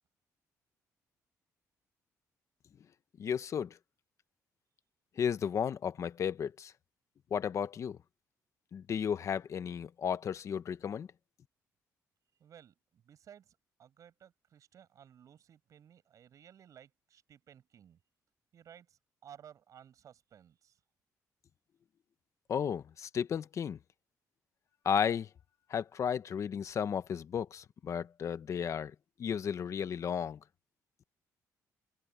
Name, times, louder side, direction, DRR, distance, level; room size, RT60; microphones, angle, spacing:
voice 1, 3.2-3.8 5.2-6.7 7.3-8.0 8.7-11.1 22.5-23.8 24.8-25.3 25.7-30.4, left 7 dB, 55° left, 1.1 m, -34 dB
voice 2, 12.4-18.0 18.5-20.8, right 9 dB, 60° right, 7.8 m, -57 dB
cardioid pair, 100°, 6 cm